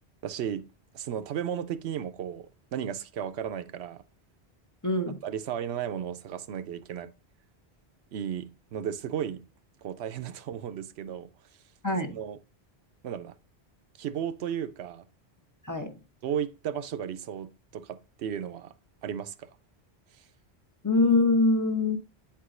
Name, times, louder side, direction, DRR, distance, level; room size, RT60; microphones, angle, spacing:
voice 1, 0.2-0.7 0.9-4.0 5.2-7.1 8.1-9.5 9.8-11.3 12.1-12.4 13.0-13.3 14.0-15.1 16.2-18.7 19.0-19.5 20.2-20.3, right 9 dB, 80° right, 0.9 m, -34 dB
voice 2, 4.8-5.2 11.8-12.1 15.7-15.9 20.8-22.0, left 3 dB, 20° left, 0.7 m, -23 dB
8.8 x 4.7 x 2.4 m
omnidirectional pair, 1.1 m